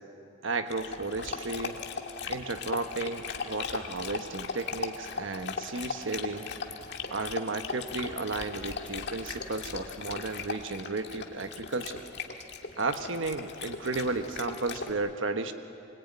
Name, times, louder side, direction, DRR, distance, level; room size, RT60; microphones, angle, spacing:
voice 1, 0.4-1.8 2.3-6.5 7.1-12.0 12.8-15.5, right 3 dB, 85° right, 8 dB, 1.2 m, -33 dB
Dog, 0.7-14.9, left 5 dB, 60° left, 1.9 m, -38 dB
24.0 x 24.0 x 9.3 m, 2.8 s
head